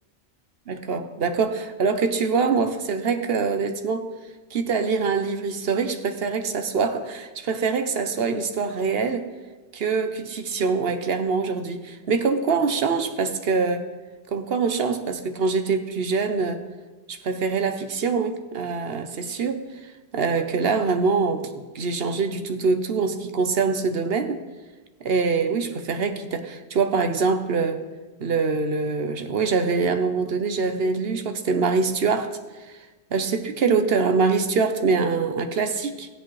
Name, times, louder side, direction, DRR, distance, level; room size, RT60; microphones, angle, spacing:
voice 1, 0.7-4.1 4.5-9.3 9.7-13.9 14.3-16.6 17.1-19.6 20.1-24.4 25.0-27.8 28.2-32.4 33.1-36.1, right 4 dB, 65° right, 8 dB, 1.0 m, -24 dB
18.0 x 8.4 x 3.2 m, 1.2 s
omnidirectional pair, 1.1 m